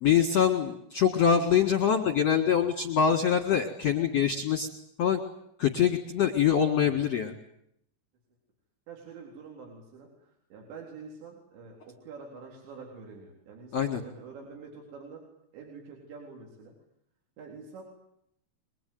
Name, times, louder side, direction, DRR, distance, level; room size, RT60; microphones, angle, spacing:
voice 1, 0.0-4.7 5.0-5.2 5.6-7.3 13.7-14.0, left 8 dB, 55° left, 3 dB, 1.9 m, -24 dB
voice 2, 8.9-15.2 15.5-16.7 17.4-17.8, right 4 dB, 65° right, 0 dB, 6.1 m, -46 dB
24.0 x 22.5 x 9.4 m, 0.74 s
omnidirectional pair, 5.6 m